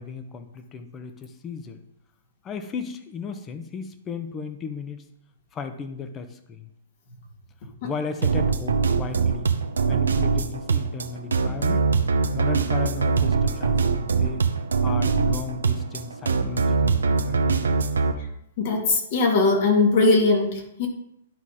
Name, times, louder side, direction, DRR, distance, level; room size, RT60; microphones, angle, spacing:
voice 1, 0.0-1.8 2.4-5.0 5.5-6.7 7.8-9.5 9.9-11.9 12.3-14.4 14.8-17.8, left 5 dB, 25° left, 8 dB, 0.9 m, -35 dB
sound 1, 8.2-18.1, right 5 dB, 90° right, 0.7 m, -22 dB
voice 2, 18.6-20.9, left 3 dB, 55° left, 1 dB, 2.2 m, -20 dB
11.0 x 4.2 x 4.9 m, 0.74 s
hypercardioid pair, 125°, 0 cm